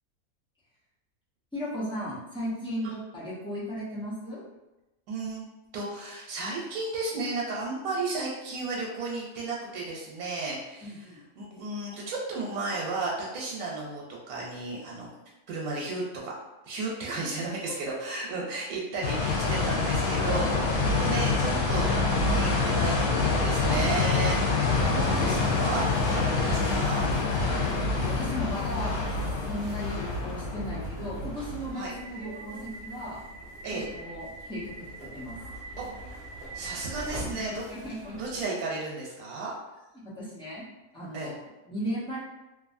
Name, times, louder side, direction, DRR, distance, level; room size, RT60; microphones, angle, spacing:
voice 1, 1.5-4.4 10.8-11.2 17.5-17.7 27.3-28.9 29.4-33.2 33.7-35.4 37.1-38.2 39.9-40.6 40.9-42.2, equal, 5° left, -9 dB, 0.5 m, -36 dB
voice 2, 5.1-5.4 5.7-11.1 11.4-15.1 15.5-16.3 16.6-27.1 31.7-31.9 33.6-33.9 35.8-35.9 36.5-37.6 38.2-39.5 41.1-41.3, right 3 dB, 90° right, -3 dB, 1.2 m, -33 dB
sound 1, 19.0-31.7, left 3 dB, 85° left, 1.1 m, -26 dB
sound 2, 24.7-38.4, right 1 dB, 50° right, 0.6 m, -44 dB
2.6 x 2.5 x 2.5 m, 1.0 s
omnidirectional pair, 1.5 m